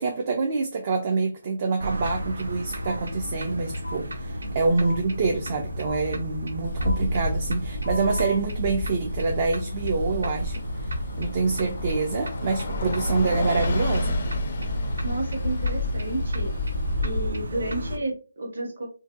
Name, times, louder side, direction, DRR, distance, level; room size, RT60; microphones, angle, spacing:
voice 1, 0.0-10.6 11.2-14.2, right 4 dB, 35° right, 0.3 m, -26 dB
sound 1, 1.8-18.0, left 1 dB, 85° right, 0.5 m, -34 dB
sound 2, 2.8-3.0 3.8-4.0 4.8-5.0 5.8-6.0 6.8-7.0 7.8-8.4, left 2 dB, 80° left, 0.7 m, -36 dB
Bus, 6.6-17.3, left 1 dB, 45° left, 0.4 m, -29 dB
voice 2, 15.0-16.5 17.0-18.9, right 2 dB, 60° right, 1.1 m, -31 dB
2.5 x 2.1 x 2.4 m
hypercardioid pair, 165°, 0 cm